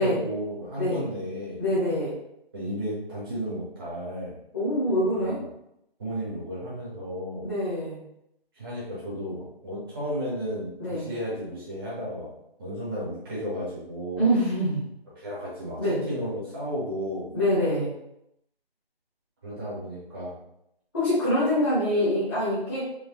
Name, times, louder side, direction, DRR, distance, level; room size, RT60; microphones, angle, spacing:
voice 1, 0.0-1.6 2.5-4.4 5.1-5.4 6.0-7.5 8.5-14.3 15.1-17.3 19.4-20.3, equal, 5° right, -8 dB, 0.8 m, -33 dB
voice 2, 1.6-2.1 4.5-5.4 7.4-8.0 10.8-11.1 14.2-14.8 15.8-16.0 17.3-17.9 20.9-22.8, equal, 25° left, -12 dB, 1.4 m, -25 dB
4.5 x 3.2 x 3.2 m, 0.80 s
figure-of-eight pair, 170°, 30 cm